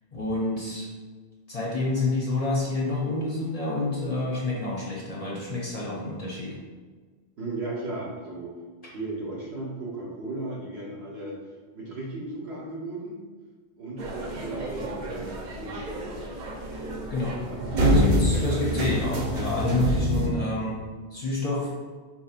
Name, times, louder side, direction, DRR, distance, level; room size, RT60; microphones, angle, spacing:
voice 1, 0.1-0.9 1.5-6.6 17.1-17.4 17.8-20.8 21.1-21.7, left 2 dB, 40° left, -5 dB, 0.7 m, -28 dB
voice 2, 7.4-8.5 8.9-11.3 11.7-13.2 13.8-16.1 16.6-17.0 17.5-18.7, right 2 dB, 75° right, -4 dB, 1.2 m, -36 dB
sound 1, 14.0-20.3, equal, 55° right, 0.6 m, -26 dB
4.4 x 2.7 x 2.4 m, 1.5 s
omnidirectional pair, 1.1 m